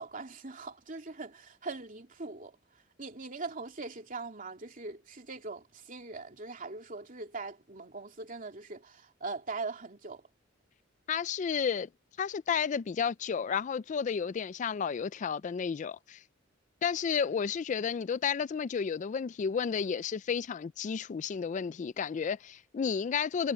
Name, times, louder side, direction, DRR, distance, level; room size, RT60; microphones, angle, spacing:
voice 1, 0.0-2.6 3.0-10.2, right 3 dB, 45° right, 2.9 m, -41 dB
voice 2, 11.1-11.9 12.2-16.2 16.8-23.5, left 6 dB, 40° left, 0.3 m, -32 dB
head